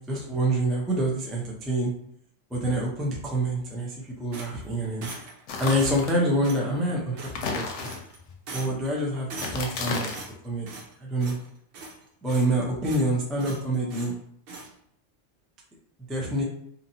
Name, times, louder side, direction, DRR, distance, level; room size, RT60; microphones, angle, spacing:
voice 1, 0.0-1.9 2.5-3.9 4.2-5.1 5.6-7.9 8.5-10.1 10.4-10.7 11.0-11.4 12.2-14.1 16.1-16.4, right 1 dB, ahead, -3 dB, 0.3 m, -26 dB
sound 1, 4.3-5.4 5.8-6.1 6.4-6.7 7.2-7.6 7.8-8.2 8.5-8.9 9.3-9.8 10.1-10.9 11.2-11.5 11.7-12.6 12.8-13.1 13.4-14.1 14.5-14.7, right 3 dB, 60° right, 0.7 m, -41 dB
sound 2, 5.5-6.2 7.3-8.3 9.3-10.3, left 4 dB, 85° left, 0.9 m, -33 dB
2.8 x 2.7 x 2.7 m, 0.68 s
omnidirectional pair, 1.2 m